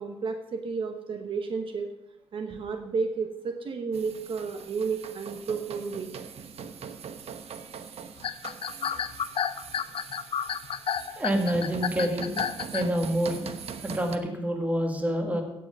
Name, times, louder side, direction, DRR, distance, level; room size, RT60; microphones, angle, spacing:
voice 1, 0.0-1.9 2.3-6.2, right 5 dB, 60° right, 5 dB, 1.0 m, -32 dB
sound 1, 3.9-14.2, right 6 dB, 85° right, 1.0 m, -42 dB
sound 2, 8.2-13.0, left 8 dB, 65° left, 0.6 m, -31 dB
voice 2, 11.2-12.3 12.7-13.5 13.8-15.4, equal, 15° right, 3 dB, 1.9 m, -27 dB
16.5 x 7.6 x 5.5 m, 0.89 s
wide cardioid pair, 170°, 10 cm